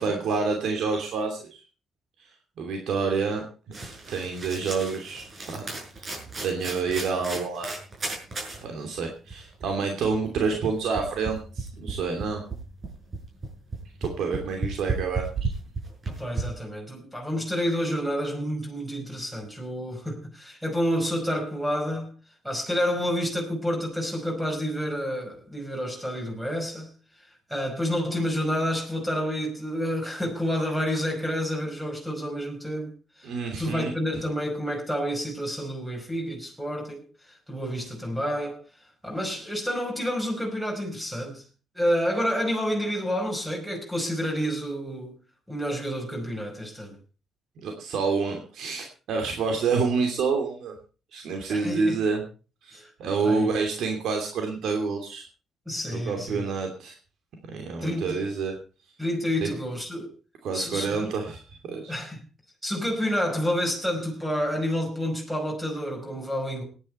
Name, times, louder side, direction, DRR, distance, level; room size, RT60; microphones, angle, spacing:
voice 1, 0.0-1.6 2.6-3.4 3.8-5.7 6.0-7.7 8.6-12.4 14.0-15.5 33.2-33.9 47.6-50.7 51.1-52.2 52.6-55.2 55.9-57.0 57.4-58.5 59.4-59.5 60.4-61.9, right 4 dB, 75° right, 2.8 m, -28 dB
sound 1, 3.7-8.6 9.0-9.1 9.3-16.4, right 3 dB, 40° right, 6.4 m, -34 dB
voice 2, 16.1-22.1 22.4-26.9 27.2-32.9 33.2-33.3 33.6-38.6 39.0-41.4 41.8-45.1 45.5-47.0 51.5-52.0 52.7-52.9 53.2-53.5 55.7-56.4 57.8-58.2 59.0-60.1 60.5-61.0 61.9-62.2 62.6-66.6, equal, 5° right, 5.3 m, -29 dB
18.0 x 10.0 x 4.4 m
cardioid pair, 90°, 0 cm